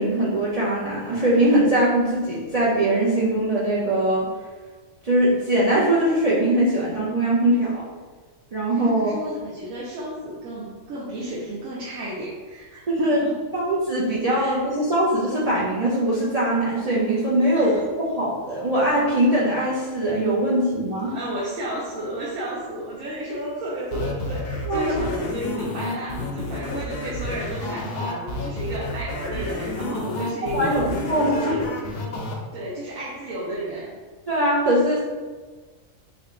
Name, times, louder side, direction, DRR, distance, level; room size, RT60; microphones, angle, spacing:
voice 1, 0.0-4.3 5.0-7.8 8.5-9.1 12.9-13.2 13.5-17.7 18.2-21.2 24.6-24.9 30.5-31.5 34.3-35.0, right 1 dB, 60° right, -7 dB, 0.4 m, -21 dB
voice 2, 8.7-13.3 14.4-14.6 17.5-17.8 21.1-31.7 32.5-34.0, right 1 dB, 80° right, -6 dB, 1.1 m, -32 dB
sound 1, 23.9-32.3, left 2 dB, 60° left, 0.6 m, -30 dB
3.6 x 2.3 x 3.6 m, 1.4 s
omnidirectional pair, 1.4 m